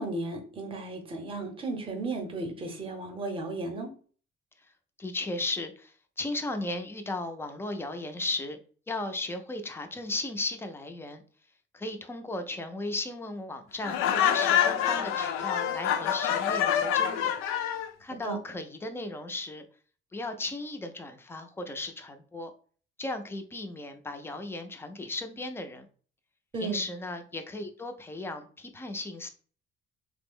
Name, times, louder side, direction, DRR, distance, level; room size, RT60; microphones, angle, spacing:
voice 1, 0.0-3.9 18.2-18.4 26.5-26.8, right 2 dB, 25° right, 0.7 m, -34 dB
voice 2, 5.0-8.6 8.9-11.2 11.7-17.3 18.0-19.6 20.1-22.5 23.0-25.9 26.6-29.3, left 2 dB, 10° left, 0.3 m, -36 dB
Laughter, 13.8-17.9, left 9 dB, 90° left, 0.4 m, -26 dB
3.2 x 2.0 x 3.5 m
cardioid pair, 150°, 21 cm